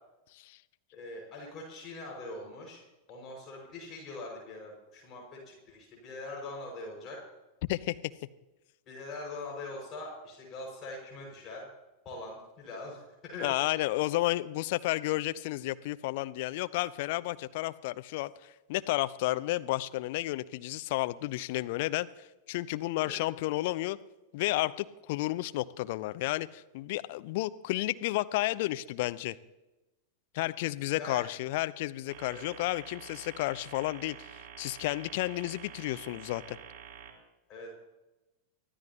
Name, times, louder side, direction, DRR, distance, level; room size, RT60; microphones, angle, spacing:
voice 1, 0.9-2.8 3.1-7.2 8.9-11.7 12.1-13.5 23.0-23.1 31.0-31.3 32.2-32.4 37.5-37.7, left 2 dB, 30° left, -1 dB, 5.4 m, -42 dB
voice 2, 13.4-24.0 24.3-29.4 30.3-34.2 34.6-36.6, left 18 dB, 50° left, 13 dB, 0.6 m, -32 dB
sound 1, 32.1-37.1, right 8 dB, 35° right, 4.2 m, -48 dB
23.5 x 15.0 x 2.9 m, 1.0 s
figure-of-eight pair, 90°, 0 cm